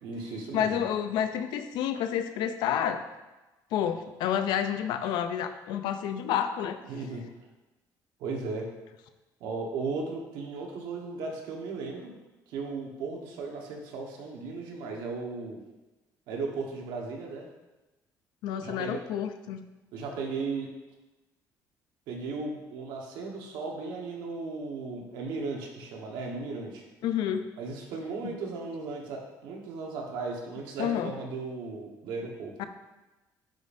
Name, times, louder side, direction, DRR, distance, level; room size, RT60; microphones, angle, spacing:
voice 1, 0.0-0.8 6.8-7.2 8.2-8.7 9.4-12.1 12.5-15.6 16.3-17.4 18.6-19.0 19.9-20.7 22.1-26.8 27.6-32.5, right 4 dB, 85° right, 0 dB, 1.3 m, -36 dB
voice 2, 0.5-3.0 3.7-6.8 18.4-19.6 27.0-27.5 30.8-31.1 32.6-32.7, left 9 dB, 85° left, 9 dB, 0.5 m, -29 dB
9.2 x 5.2 x 2.6 m, 1.1 s
cardioid pair, 135°, 7 cm